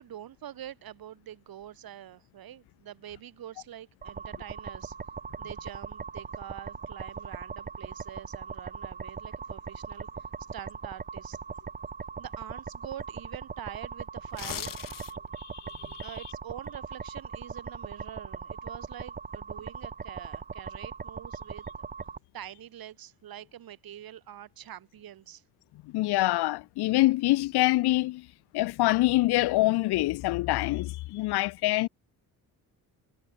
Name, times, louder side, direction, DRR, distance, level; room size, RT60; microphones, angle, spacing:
voice 1, 0.0-5.0 5.4-10.3 10.5-11.4 12.2-14.7 16.0-21.7 22.3-25.4, right 11 dB, 65° right, 1.8 m, -45 dB
sound 1, 4.0-22.2, right 6 dB, 25° right, 0.6 m, -40 dB
sound 2, 14.2-15.4 15.8-16.0, left 10 dB, 60° left, 1.6 m, -38 dB
voice 2, 15.4-16.1 25.8-28.3 28.5-31.9, left 18 dB, 90° left, 0.6 m, -25 dB
cardioid pair, 100°, 38 cm